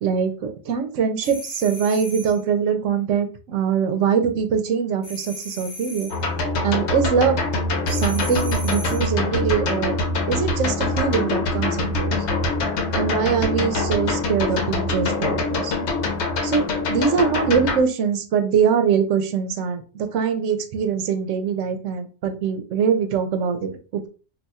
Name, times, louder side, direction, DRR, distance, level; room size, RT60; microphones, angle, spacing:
voice 1, 0.0-6.1 6.6-7.5 7.9-10.0 10.3-12.2 12.9-15.7 16.4-24.1, right 7 dB, 85° right, 7 dB, 1.0 m, -23 dB
sound 1, 1.2-2.4 5.0-6.2 7.9-9.1, left 1 dB, 45° left, 1.0 m, -37 dB
sound 2, 6.1-17.8, left 2 dB, 70° left, 1.0 m, -24 dB
2.6 x 2.3 x 4.1 m, 0.37 s
omnidirectional pair, 1.2 m